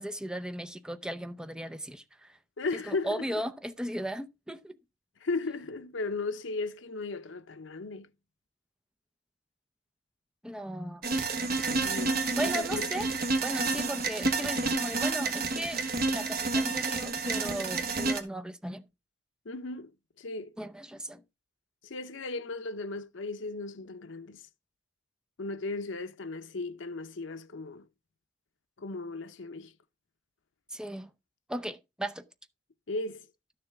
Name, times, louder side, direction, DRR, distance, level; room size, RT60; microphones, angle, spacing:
voice 1, 0.0-2.3 2.9-4.8 10.4-11.0 12.2-13.1 13.4-15.8 16.1-18.9 20.6-21.2 30.7-31.1 31.5-32.2, equal, 5° right, 0.6 m, -36 dB
voice 2, 2.6-3.2 5.2-8.1 11.8-12.9 19.5-19.9 20.2-20.5 21.8-24.4 25.4-27.9 28.8-29.7 32.9-33.2, left 3 dB, 80° left, 0.7 m, -36 dB
sound 1, 11.0-18.2, right 3 dB, 55° right, 1.4 m, -30 dB
12.0 x 6.8 x 3.5 m
head